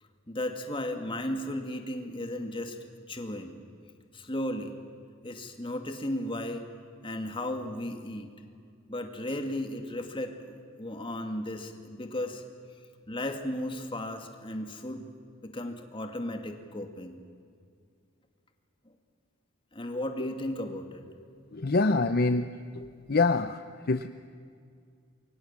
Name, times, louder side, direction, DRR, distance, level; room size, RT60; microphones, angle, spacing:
voice 1, 0.3-2.8 3.1-3.6 4.1-4.8 5.2-6.6 7.0-8.3 8.9-12.4 13.1-15.1 15.4-17.2 18.9-19.0 19.7-21.0, left 1 dB, 25° left, 5 dB, 2.3 m, -35 dB
voice 2, 21.5-22.5 22.7-23.6 23.9-24.1, left 3 dB, 50° left, 10 dB, 0.7 m, -25 dB
28.5 x 23.5 x 7.4 m, 2.2 s
head